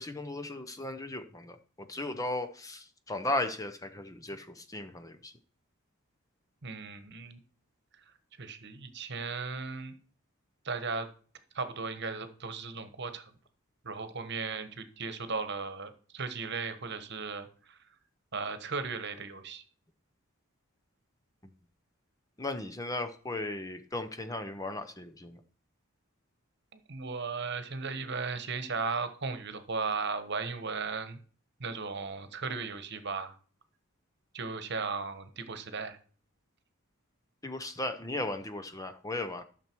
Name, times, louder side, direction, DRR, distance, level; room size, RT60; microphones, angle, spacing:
voice 1, 0.0-5.3 22.4-25.4 37.4-39.4, left 2 dB, 15° left, 9 dB, 0.7 m, -36 dB
voice 2, 6.6-7.4 8.4-9.9 10.6-11.1 11.5-13.2 13.8-17.8 18.3-19.6 26.9-31.2 31.6-33.3 34.3-36.0, right 4 dB, 50° right, 10 dB, 1.2 m, -36 dB
12.5 x 6.8 x 4.6 m, 0.42 s
head